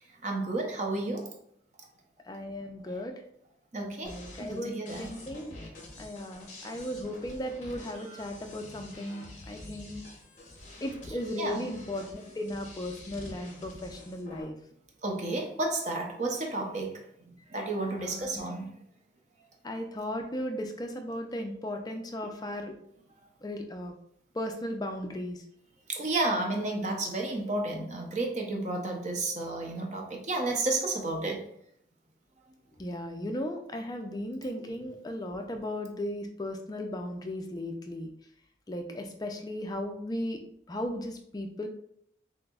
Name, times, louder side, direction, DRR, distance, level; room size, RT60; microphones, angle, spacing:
voice 1, 0.2-1.3 3.7-5.1 11.4-11.6 15.0-17.0 17.3-18.7 25.9-31.4, right 2 dB, 40° right, 1 dB, 0.6 m, -32 dB
voice 2, 2.3-3.2 4.0-4.7 5.0-5.5 6.0-10.0 10.8-14.5 18.0-18.3 19.6-22.8 23.4-23.9 24.3-25.4 32.8-38.1 38.7-40.4 40.7-41.7, left 1 dB, 20° left, 4 dB, 0.3 m, -36 dB
sound 1, 4.0-14.4, left 1 dB, 40° left, 0.9 m, -47 dB
5.9 x 2.0 x 2.3 m, 0.70 s
head